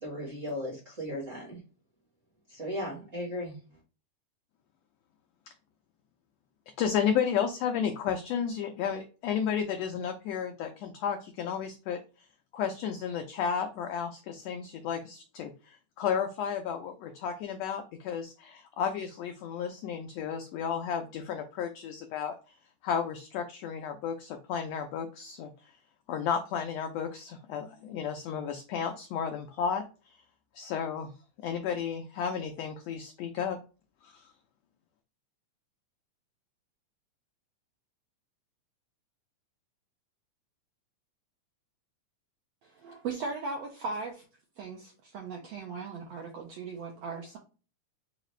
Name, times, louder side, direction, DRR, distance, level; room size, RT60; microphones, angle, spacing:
voice 1, 0.0-1.6 2.5-3.6, left 1 dB, 45° right, 1.0 m, -36 dB
voice 2, 6.8-12.0 12.5-22.6 22.8-25.5 26.1-30.2 30.5-31.1 31.4-33.6 34.0-34.3, left 7 dB, 85° left, 1.5 m, -33 dB
voice 3, 42.6-44.2 44.6-47.4, right 4 dB, 80° right, 1.4 m, -38 dB
4.9 x 2.4 x 3.1 m
omnidirectional pair, 3.5 m